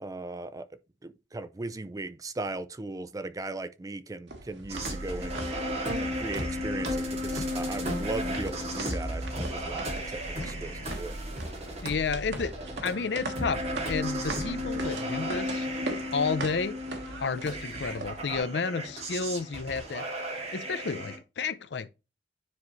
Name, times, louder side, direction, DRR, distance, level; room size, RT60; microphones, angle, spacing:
voice 1, 0.0-0.7 1.0-5.6 6.0-11.2, right 2 dB, 20° right, 0.4 m, -37 dB
sound 1, 4.3-18.4, right 2 dB, 85° right, 1.4 m, -42 dB
sound 2, 4.7-21.2, equal, 40° right, 2.4 m, -34 dB
voice 2, 11.8-12.5 12.8-15.7 16.1-16.8 17.2-20.1 20.5-21.9, left 5 dB, 70° left, 0.5 m, -31 dB
9.6 x 3.9 x 3.1 m
head